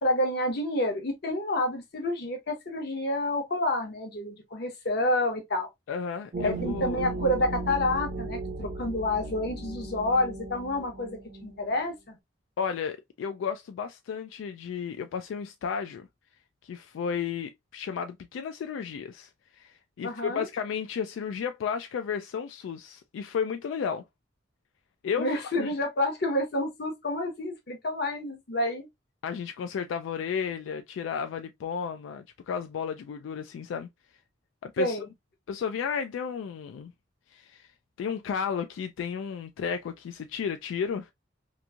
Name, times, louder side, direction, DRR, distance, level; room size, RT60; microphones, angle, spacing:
voice 1, 0.0-5.7 6.4-12.2 20.0-20.5 25.2-28.9 34.8-35.1, left 1 dB, 60° left, 0.9 m, -29 dB
voice 2, 5.9-7.1 12.6-16.1 16.6-19.3 19.6-24.0 25.0-25.3 25.6-25.7 29.2-33.9 34.6-35.0 35.5-36.9 37.3-37.7 38.0-41.1, left 6 dB, 90° left, 0.3 m, -33 dB
sound 1, 6.3-11.8, right 2 dB, 50° right, 0.6 m, -36 dB
2.9 x 2.5 x 2.3 m
head